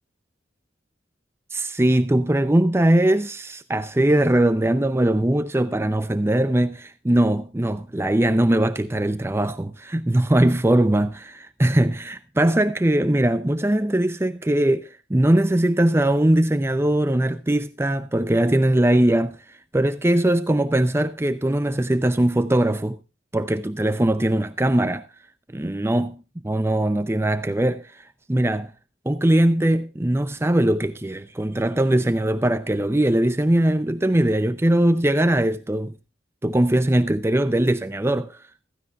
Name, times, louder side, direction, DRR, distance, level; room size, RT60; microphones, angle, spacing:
voice 1, 1.5-23.0 23.3-25.1 25.5-28.7 29.1-35.9 36.4-38.4, right 1 dB, 15° right, 0.6 m, -21 dB
16.0 x 15.0 x 2.4 m
head